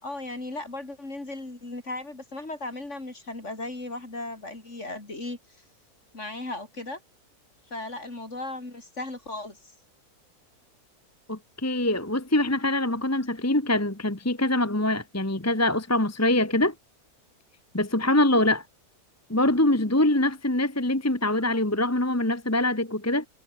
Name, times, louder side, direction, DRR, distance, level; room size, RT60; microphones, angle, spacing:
voice 1, 0.0-5.4 6.1-7.0 7.7-9.7, left 2 dB, 50° left, 5.1 m, -36 dB
voice 2, 11.3-16.7 17.7-18.6 19.3-23.3, left 1 dB, 10° left, 1.4 m, -24 dB
omnidirectional pair, 1.6 m